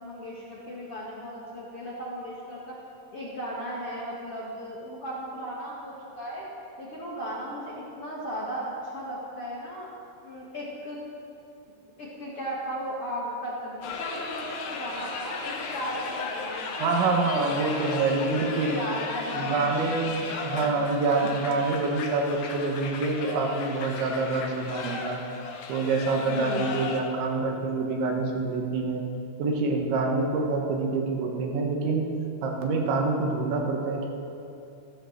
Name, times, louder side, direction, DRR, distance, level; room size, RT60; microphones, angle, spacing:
voice 1, 0.0-2.8 3.1-6.5 6.8-9.9 10.2-11.0 12.0-18.0 18.4-19.9 20.5-20.7 26.3-26.7, equal, 45° left, -6 dB, 2.0 m, -36 dB
sound 1, 13.8-27.0, left 4 dB, 70° left, 3.1 m, -36 dB
voice 2, 16.8-18.8 19.3-25.2 25.7-29.0 29.4-32.1 32.4-34.1, right 3 dB, 75° right, 1 dB, 3.8 m, -26 dB
14.5 x 13.0 x 6.7 m, 2.7 s
omnidirectional pair, 5.4 m